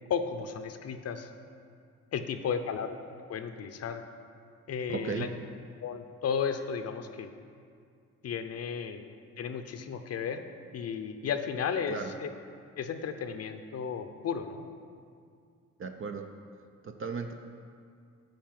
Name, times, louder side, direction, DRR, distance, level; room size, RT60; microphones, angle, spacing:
voice 1, 0.1-1.3 2.1-3.0 3.3-4.0 4.7-5.3 5.8-7.3 8.2-9.0 9.4-10.5 10.7-12.3 12.8-14.7, left 6 dB, 55° left, 8 dB, 0.7 m, -34 dB
voice 2, 4.9-5.3 11.9-12.1 15.8-16.3 16.8-17.3, right 5 dB, 45° right, 5 dB, 0.6 m, -35 dB
10.5 x 4.8 x 7.4 m, 2.3 s
cardioid pair, 90°, 30 cm